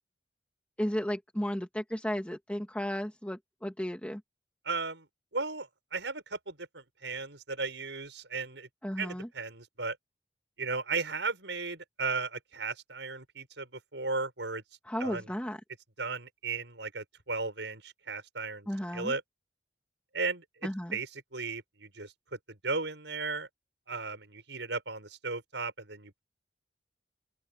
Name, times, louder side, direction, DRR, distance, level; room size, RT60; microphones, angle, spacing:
voice 1, 0.8-4.2 8.8-9.3 14.8-15.6 18.7-19.1 20.6-21.0, equal, 5° left, 2.2 m, -34 dB
voice 2, 4.6-5.1 5.3-8.7 9.0-10.0 10.6-14.6 15.0-15.3 16.0-18.7 18.9-19.2 20.1-23.5 23.9-26.2, right 4 dB, 80° right, 5.9 m, -36 dB
open air
head